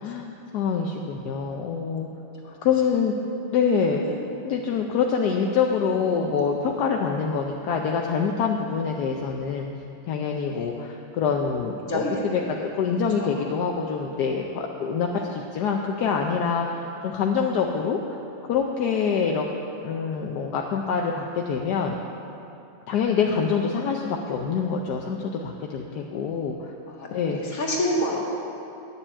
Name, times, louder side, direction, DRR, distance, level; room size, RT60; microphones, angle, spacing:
voice 1, 0.0-2.1 2.6-3.1 3.5-4.0 4.4-9.7 10.1-18.0 18.5-19.5 19.8-22.0 22.9-26.7 27.1-27.4, left 6 dB, 65° left, 1 dB, 1.1 m, -25 dB
voice 2, 11.8-12.5 13.2-13.3 14.0-14.2 15.2-15.3 27.0-27.1 27.3-28.2, equal, 50° left, -2 dB, 2.2 m, -28 dB
9.9 x 7.2 x 8.8 m, 2.8 s
omnidirectional pair, 2.1 m